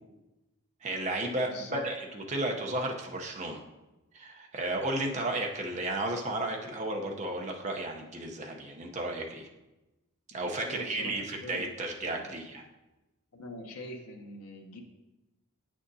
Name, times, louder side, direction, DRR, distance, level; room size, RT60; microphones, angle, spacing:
voice 1, 0.8-3.6 4.1-9.5 10.3-12.6, right 1 dB, 30° right, 1 dB, 0.7 m, -33 dB
voice 2, 1.5-1.8 10.6-11.7 12.0-12.4 13.3-14.8, left 2 dB, 90° left, 2 dB, 0.8 m, -43 dB
8.4 x 6.2 x 2.7 m, 1.0 s
head